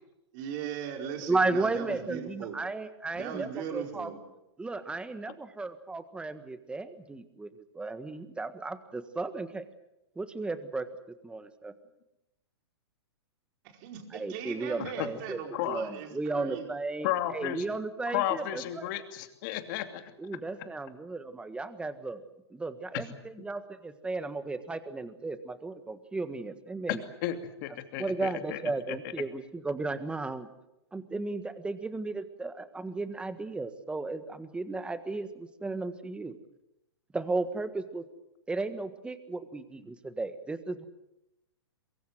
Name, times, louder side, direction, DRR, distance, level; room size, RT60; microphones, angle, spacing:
voice 1, 0.3-2.6 3.1-4.2 13.6-16.7, right 8 dB, 45° right, 3 dB, 4.8 m, -39 dB
voice 2, 1.3-4.1 4.6-9.7 10.1-11.7 14.1-15.4 15.7-18.9 20.2-22.2 22.5-27.0 28.0-30.5 30.9-36.4 37.1-38.0 38.5-40.9, right 3 dB, 5° right, 11 dB, 1.6 m, -34 dB
voice 3, 17.0-17.6 18.1-20.0 26.9-28.6, left 13 dB, 45° left, 7 dB, 2.8 m, -33 dB
23.0 x 23.0 x 7.6 m, 0.91 s
hypercardioid pair, 135°, 14 cm